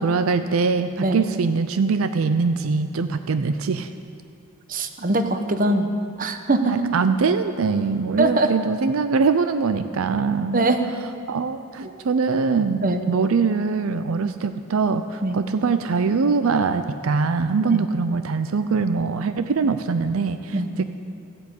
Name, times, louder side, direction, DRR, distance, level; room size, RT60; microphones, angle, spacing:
voice 1, 0.0-3.9 6.7-10.7 11.3-20.8, right 4 dB, 80° right, 10 dB, 0.5 m, -22 dB
voice 2, 4.7-5.9 6.2-6.8 8.2-8.5 10.5-10.8 11.8-11.9 12.8-13.0 14.2-14.4 15.2-15.4 17.7-17.8 20.5-20.7, right 2 dB, 40° right, 7 dB, 0.9 m, -22 dB
14.5 x 8.3 x 8.3 m, 2.5 s
head